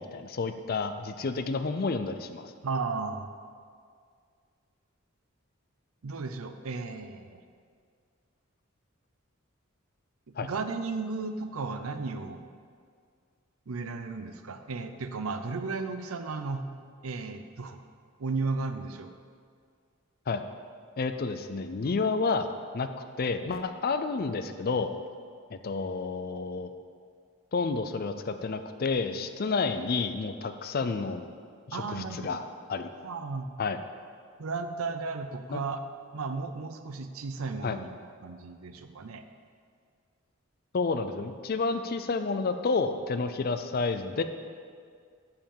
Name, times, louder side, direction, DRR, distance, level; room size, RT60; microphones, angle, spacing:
voice 1, 0.0-2.5 10.4-10.5 20.3-20.4 21.0-22.5 22.7-22.9 23.2-24.9 25.5-26.7 27.5-31.3 31.7-32.4 32.7-32.9 33.6-33.8 35.5-35.6 37.6-37.8 40.7-44.2, left 4 dB, 45° left, 9 dB, 0.4 m, -30 dB
voice 2, 2.6-3.3 6.0-7.4 10.4-12.4 13.7-16.7 17.0-17.8 18.2-19.1 31.7-32.4 33.0-33.5 34.4-35.8 36.1-37.9 38.2-39.2, right 4 dB, 85° right, 8 dB, 0.6 m, -34 dB
6.7 x 5.7 x 7.3 m, 2.1 s
head